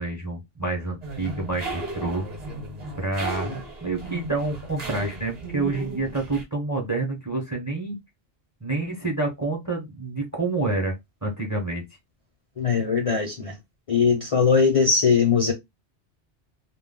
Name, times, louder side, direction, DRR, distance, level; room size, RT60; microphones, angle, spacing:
voice 1, 0.0-2.3 3.0-8.0 8.6-11.8, right 2 dB, 20° right, 0.7 m, -28 dB
sound 1, 1.0-6.4, right 3 dB, 40° right, 0.9 m, -35 dB
voice 2, 12.6-13.6 13.9-15.5, left 5 dB, 35° left, 0.6 m, -20 dB
2.3 x 2.2 x 3.6 m
omnidirectional pair, 1.2 m